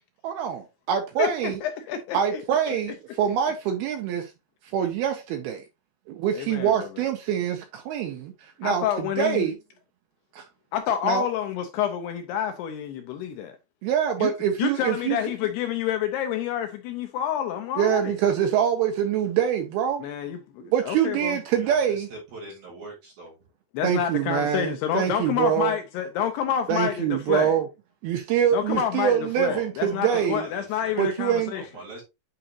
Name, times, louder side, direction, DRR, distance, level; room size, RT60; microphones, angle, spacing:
voice 1, 0.2-1.6 2.1-4.3 4.7-5.6 6.1-8.3 8.6-9.6 10.4-10.5 11.0-11.2 13.8-15.2 17.8-20.0 20.7-22.1 23.8-25.8 26.7-27.7 28.0-30.4 31.0-31.5, right 9 dB, 80° right, 2.3 m, -25 dB
voice 2, 1.2-2.8 6.3-6.9 8.6-9.5 10.7-13.6 14.2-14.3 14.6-18.2 20.0-21.4 23.7-27.5 28.5-31.6, left 9 dB, 80° left, 2.5 m, -28 dB
voice 3, 21.5-23.4 29.3-32.0, right 2 dB, 55° right, 4.6 m, -42 dB
8.9 x 4.9 x 2.8 m
omnidirectional pair, 5.3 m